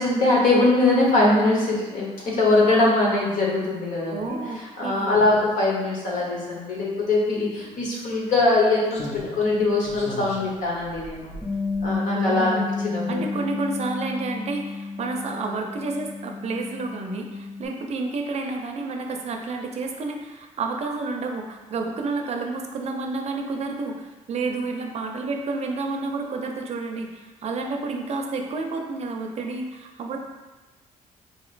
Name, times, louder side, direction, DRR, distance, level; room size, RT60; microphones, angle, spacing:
voice 1, 0.0-4.4 4.8-11.4 11.8-13.3, left 2 dB, 70° left, -3 dB, 1.1 m, -22 dB
voice 2, 4.1-5.3 12.1-12.7 13.1-30.2, right 3 dB, 50° right, 3 dB, 0.5 m, -30 dB
Slam, 7.5-7.6 8.9-12.4 12.7-12.9, left 2 dB, 55° left, 0.7 m, -39 dB
Bass guitar, 11.4-17.7, left 4 dB, ahead, 0.7 m, -31 dB
4.0 x 2.9 x 2.5 m, 1.2 s
cardioid pair, 90°, 14 cm